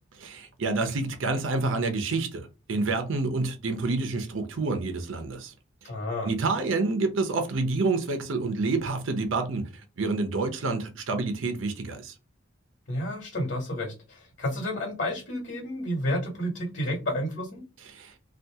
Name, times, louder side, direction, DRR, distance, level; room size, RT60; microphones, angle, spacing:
voice 1, 0.2-5.5 6.2-9.6 10.0-12.1 17.9-18.1, right 3 dB, 85° right, 0.6 m, -28 dB
voice 2, 5.8-6.3 12.9-17.6, left 1 dB, 55° left, 1.5 m, -31 dB
2.7 x 2.4 x 3.4 m
head